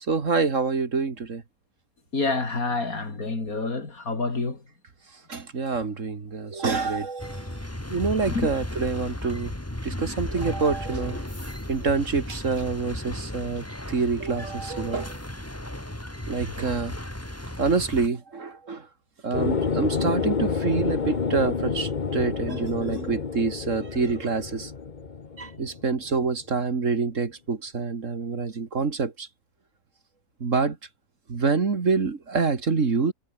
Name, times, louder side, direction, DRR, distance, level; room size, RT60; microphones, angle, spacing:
voice 1, 0.1-1.4 5.3-7.6 7.9-9.5 9.8-11.2 11.7-15.2 16.3-16.9 17.6-18.9 19.2-24.7 25.4-29.3 30.4-30.8 31.3-33.1, right 4 dB, 50° right, 2.3 m, -26 dB
voice 2, 2.1-4.6 6.5-6.6 8.3-8.5, left 3 dB, 65° left, 4.0 m, -28 dB
sound 1, 7.2-18.1, left 1 dB, 10° left, 2.5 m, -35 dB
sound 2, 19.3-26.2, left 5 dB, 35° left, 1.1 m, -29 dB
omnidirectional pair, 1.7 m